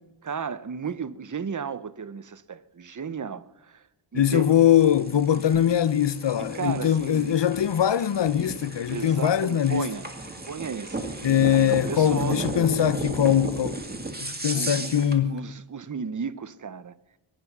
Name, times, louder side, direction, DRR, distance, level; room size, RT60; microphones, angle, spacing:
voice 1, 0.2-4.7 5.3-5.6 6.4-7.4 8.9-10.1 10.5-12.5 14.5-16.9, right 6 dB, 40° right, 0.7 m, -34 dB
voice 2, 4.1-9.9 11.2-13.8 14.2-15.4, left 10 dB, 65° left, 0.7 m, -22 dB
sound 1, 4.2-15.2, right 2 dB, 20° right, 1.9 m, -35 dB
22.5 x 10.0 x 6.0 m
wide cardioid pair, 95°, 47 cm